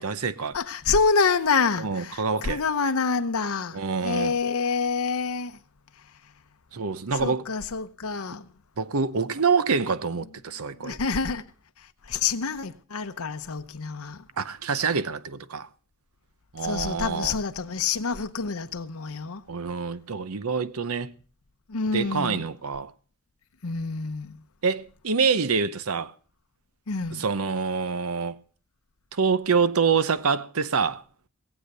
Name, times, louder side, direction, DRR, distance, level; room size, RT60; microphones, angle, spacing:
voice 1, 0.0-0.6 1.8-2.6 3.7-4.4 6.7-7.4 8.8-11.0 14.4-15.7 16.5-17.4 19.5-21.1 21.9-22.9 24.6-26.1 27.1-28.4 29.1-31.0, right 5 dB, 80° right, 0.8 m, -26 dB
voice 2, 0.5-5.6 7.2-8.5 10.8-11.4 11.8-14.2 16.6-19.4 21.7-22.5 23.6-24.4 26.9-27.2, left 5 dB, 80° left, 0.9 m, -27 dB
18.5 x 8.0 x 6.7 m
head